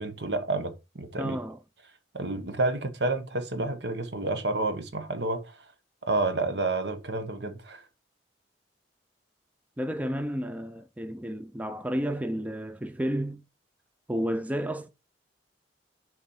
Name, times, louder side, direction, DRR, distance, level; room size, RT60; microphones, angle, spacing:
voice 1, 0.0-1.4 2.1-5.6 6.0-7.8, right 2 dB, 70° right, 1.2 m, -30 dB
voice 2, 1.2-1.6 9.8-13.4 14.1-14.9, equal, 10° right, 0.4 m, -31 dB
7.0 x 4.3 x 4.3 m
head